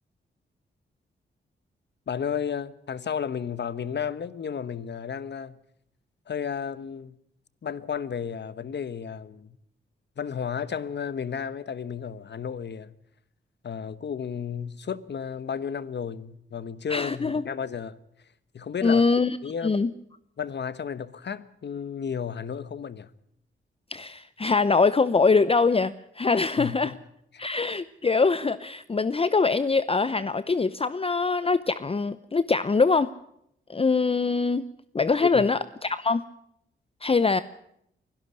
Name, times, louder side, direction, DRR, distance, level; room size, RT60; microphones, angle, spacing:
voice 1, 2.1-5.5 6.3-7.1 7.6-9.6 10.2-12.9 13.6-18.0 18.5-19.0 19.4-19.8 20.4-23.1 26.6-26.9 27.3-27.5 35.2-35.4, left 7 dB, 60° left, 1.2 m, -33 dB
voice 2, 16.9-17.4 18.8-19.4 19.6-19.9 23.9-27.0 27.4-33.1 33.7-34.7 34.9-36.2 37.0-37.4, left 4 dB, 30° left, 0.7 m, -23 dB
23.5 x 12.0 x 9.8 m
cardioid pair, 60°, 21 cm